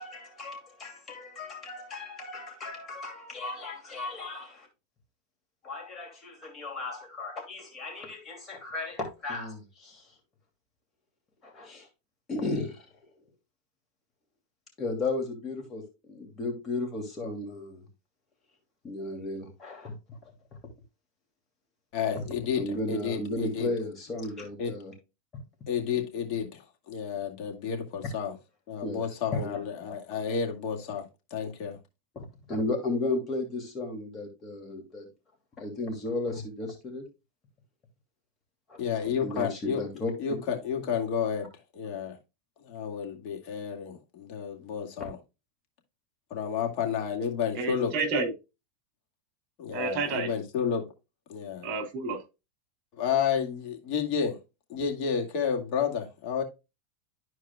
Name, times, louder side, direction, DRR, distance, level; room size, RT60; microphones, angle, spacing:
voice 1, 0.0-4.7 5.6-10.2 11.4-11.9 12.3-13.2 14.8-17.9 18.8-20.3 22.1-22.2 22.5-24.9 25.3-25.4 28.8-29.6 32.1-35.1 35.6-37.0 38.7-40.1 45.0-45.1, left 2 dB, 25° left, 2.6 m, -35 dB
voice 2, 21.9-22.6 22.9-23.7 24.6-24.7 25.7-28.3 28.7-31.8 38.8-39.8 40.2-41.5 41.7-42.2 42.6-45.2 46.3-47.9 49.6-50.8 51.3-51.7 53.0-54.4 54.7-56.4, left 7 dB, 50° left, 2.1 m, -31 dB
voice 3, 47.5-48.3 49.7-50.3 51.6-52.2, right 3 dB, 45° right, 2.7 m, -30 dB
12.5 x 4.7 x 2.3 m
supercardioid pair, 130°, 0 cm